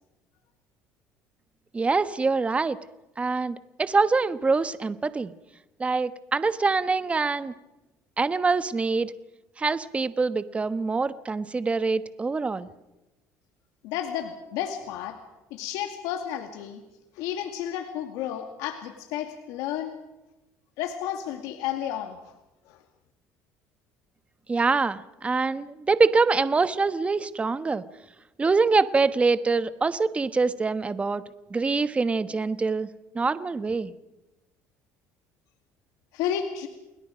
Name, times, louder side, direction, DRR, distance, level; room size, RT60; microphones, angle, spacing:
voice 1, 1.7-2.8 3.2-5.3 5.8-7.5 8.2-9.1 9.6-12.7 24.5-27.8 28.4-31.2 31.5-32.9 33.1-33.9, right 4 dB, 20° right, 12 dB, 1.2 m, -24 dB
voice 2, 13.8-15.2 15.5-16.8 17.2-19.9 20.8-22.2 22.7-22.8 36.1-36.7, left 10 dB, 80° left, 6 dB, 2.2 m, -32 dB
30.0 x 21.0 x 5.1 m, 0.99 s
cardioid pair, 105°, 6 cm